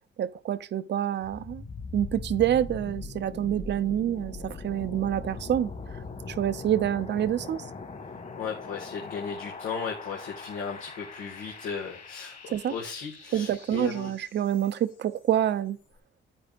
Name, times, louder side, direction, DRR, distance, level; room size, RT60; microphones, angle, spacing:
voice 1, 0.2-1.6 1.9-5.7 6.4-7.6 12.5-12.7 13.3-15.8, right 11 dB, 60° right, 0.8 m, -27 dB
sound 1, 1.2-15.0, left 4 dB, 40° left, 2.3 m, -41 dB
voice 2, 8.4-14.1, left 6 dB, 85° left, 1.9 m, -36 dB
10.0 x 8.8 x 2.5 m
cardioid pair, 90°, 20 cm